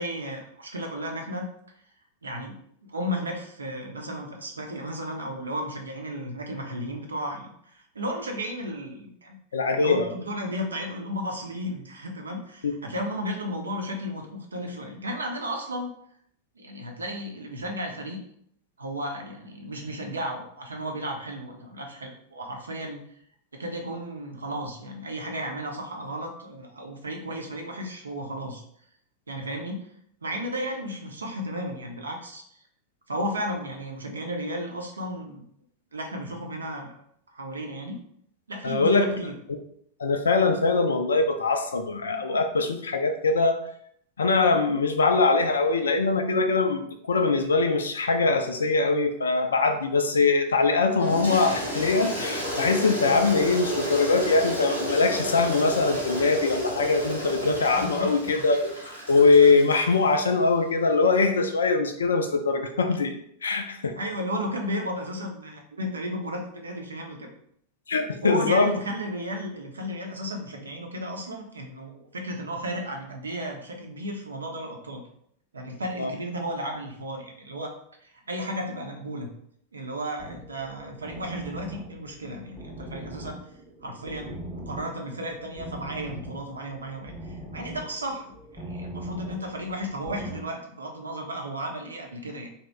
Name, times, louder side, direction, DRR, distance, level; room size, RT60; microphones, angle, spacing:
voice 1, 0.0-1.5 2.2-9.4 9.7-15.9 16.6-18.2 18.8-23.0 23.6-28.6 29.3-29.9 30.2-32.4 33.1-35.4 35.9-36.9 37.3-38.0 38.5-39.3 57.7-58.5 64.0-67.3 68.2-75.0 75.5-77.7 78.0-79.3 79.7-83.4 83.8-92.5, equal, 75° right, 2 dB, 0.5 m, -34 dB
voice 2, 9.5-10.1 12.6-12.7 38.6-39.1 40.0-43.6 44.2-58.7 59.1-63.1 63.4-63.9 67.9-68.7 76.0-76.1, left 3 dB, 70° left, 7 dB, 0.3 m, -22 dB
Toilet flush, 51.0-60.3, equal, 90° left, 0.9 m, -32 dB
sound 1, 80.2-90.4, right 1 dB, 5° right, 0.6 m, -41 dB
2.8 x 2.1 x 3.3 m, 0.69 s
figure-of-eight pair, 90°, 0 cm